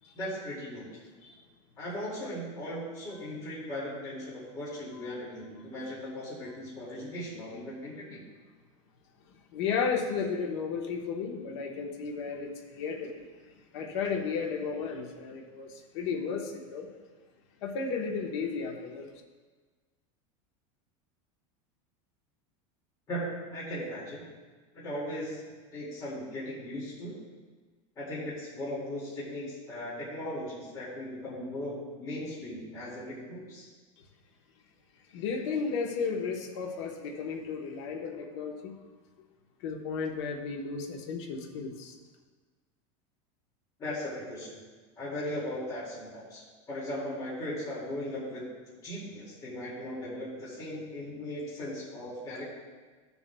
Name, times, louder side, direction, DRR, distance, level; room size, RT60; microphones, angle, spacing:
voice 1, 0.1-0.9 1.8-8.3 23.1-24.2 24.7-25.4 25.7-27.2 28.0-33.7 43.8-44.6 45.0-48.5 48.8-52.4, left 1 dB, 20° left, -7 dB, 2.3 m, -38 dB
voice 2, 9.3-16.9 17.6-19.1 35.1-38.8 39.6-41.9, left 5 dB, 60° left, 1 dB, 1.2 m, -34 dB
14.5 x 7.1 x 2.3 m, 1.4 s
supercardioid pair, 180°, 16 cm